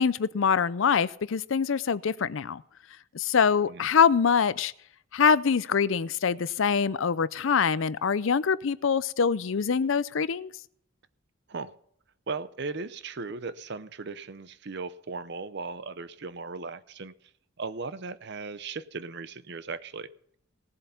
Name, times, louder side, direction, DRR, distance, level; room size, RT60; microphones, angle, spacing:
voice 1, 0.0-2.6 3.1-4.7 5.1-10.5, left 6 dB, 65° left, 0.5 m, -24 dB
voice 2, 12.3-17.1 17.6-20.1, right 4 dB, 50° right, 0.7 m, -37 dB
18.5 x 7.8 x 5.7 m
head